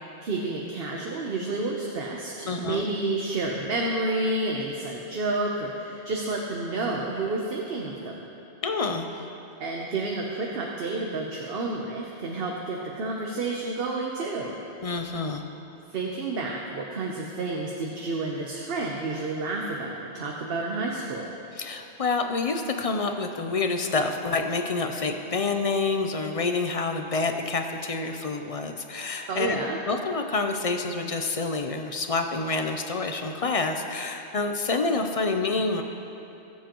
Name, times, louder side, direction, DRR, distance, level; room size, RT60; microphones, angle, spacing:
voice 1, 0.2-8.2 9.6-14.5 15.9-21.3 29.3-29.8, right 2 dB, 60° right, -1 dB, 1.0 m, -30 dB
voice 2, 2.5-2.9 8.6-9.1 14.8-15.5 21.5-29.6 29.9-35.8, left 3 dB, 45° left, 5 dB, 0.5 m, -28 dB
19.0 x 7.5 x 3.0 m, 2.8 s
omnidirectional pair, 1.1 m